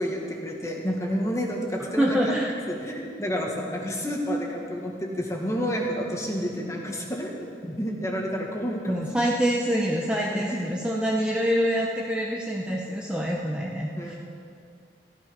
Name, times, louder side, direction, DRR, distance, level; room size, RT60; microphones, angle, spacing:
voice 1, 0.0-2.2 2.7-9.0 10.3-10.8 14.0-14.2, equal, 20° left, 0 dB, 1.8 m, -30 dB
voice 2, 2.0-2.5 8.9-14.2, equal, 5° right, -3 dB, 0.9 m, -26 dB
15.0 x 13.0 x 5.3 m, 2.3 s
head